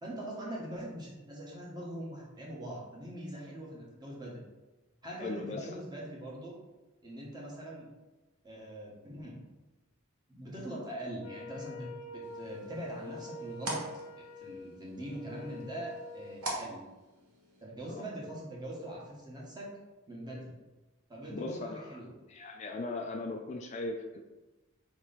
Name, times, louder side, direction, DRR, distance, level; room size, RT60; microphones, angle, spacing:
voice 1, 0.0-4.4 5.0-6.5 7.0-7.9 8.4-9.4 10.3-13.8 14.2-16.8 17.6-19.7 20.1-20.6 21.1-22.1, right 1 dB, 20° right, -4 dB, 1.1 m, -42 dB
voice 2, 5.1-5.7 17.9-18.1 21.3-21.8 22.3-24.2, left 2 dB, 30° left, 2 dB, 0.3 m, -38 dB
Wind instrument woodwind instrument, 11.2-16.4, left 2 dB, 90° left, 0.6 m, -46 dB
sound 1, 12.2-17.6, right 2 dB, 80° right, 1.1 m, -44 dB
4.2 x 3.0 x 3.9 m, 1.1 s
head